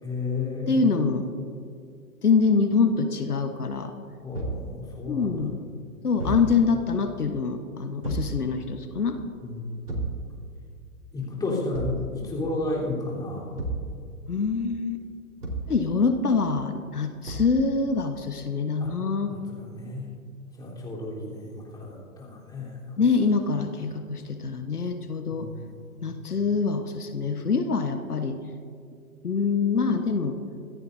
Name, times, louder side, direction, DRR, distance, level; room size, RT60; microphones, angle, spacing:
voice 1, 0.0-0.9 4.2-5.4 6.2-6.4 9.4-10.1 11.1-13.6 18.8-18.9 19.3-20.1 20.6-23.0 25.3-26.1, left 3 dB, 10° left, -5 dB, 3.6 m, -33 dB
voice 2, 0.7-1.3 2.2-3.9 5.1-5.6 6.0-9.2 14.3-15.0 15.7-19.3 23.0-25.5 26.0-28.4 29.2-30.4, left 4 dB, 85° left, 7 dB, 1.3 m, -25 dB
Thump thud, 4.3-4.7 6.2-6.5 8.0-8.4 9.9-10.2 11.7-12.1 13.6-13.9 15.4-15.8 17.3-17.6, right 2 dB, 85° right, 3.9 m, -31 dB
25.5 x 13.5 x 2.7 m, 2.3 s
figure-of-eight pair, 125°, 44 cm